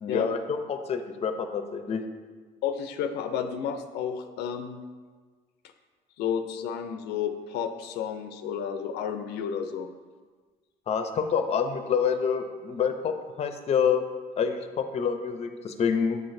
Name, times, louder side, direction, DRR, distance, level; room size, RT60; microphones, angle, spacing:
voice 1, 0.0-2.0 10.9-14.0 14.4-16.2, left 6 dB, 40° left, 7 dB, 0.5 m, -27 dB
voice 2, 2.6-4.8 6.2-9.9, left 7 dB, 85° left, 8 dB, 0.4 m, -31 dB
7.5 x 5.7 x 2.6 m, 1.5 s
cardioid pair, 110°, 17 cm